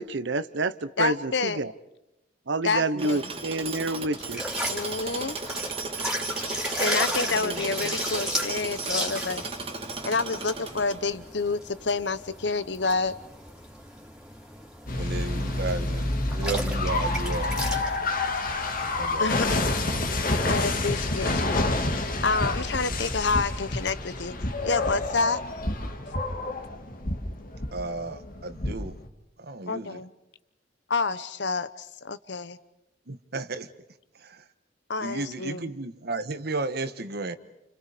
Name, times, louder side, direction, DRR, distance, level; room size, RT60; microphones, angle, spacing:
voice 1, 0.0-1.7 2.5-4.4, right 2 dB, 75° right, 14 dB, 0.9 m, -28 dB
voice 2, 1.0-1.6 2.6-3.2 4.7-5.4 6.8-9.4 10.0-13.1 15.0-15.1 19.2-19.6 20.4-21.7 22.2-24.3 24.6-25.4 29.7-30.1 30.9-32.6 34.9-35.7, left 4 dB, 65° left, 15 dB, 1.0 m, -28 dB
Tools, 3.0-11.3, right 3 dB, 30° right, 2.4 m, -35 dB
sound 1, 4.2-18.0, equal, 5° right, 3.3 m, -35 dB
voice 3, 7.3-7.9 14.9-17.6 19.0-19.3 22.9-23.0 27.7-29.0 29.4-30.0 33.1-33.7 34.2-34.4 35.0-37.4, right 3 dB, 60° right, 11 dB, 1.3 m, -34 dB
sound 2, 14.9-29.1, left 2 dB, 50° left, 2.0 m, -28 dB
29.5 x 29.5 x 5.1 m, 0.90 s
head